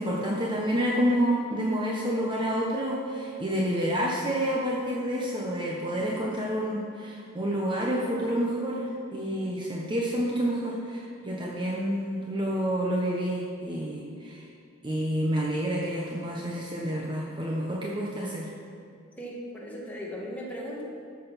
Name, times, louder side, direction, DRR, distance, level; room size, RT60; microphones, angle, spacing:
voice 1, 0.0-14.5 14.8-18.5, equal, 25° right, -3 dB, 1.0 m, -29 dB
voice 2, 19.2-20.8, equal, 10° left, -5 dB, 2.1 m, -37 dB
13.5 x 6.7 x 5.7 m, 2.3 s
head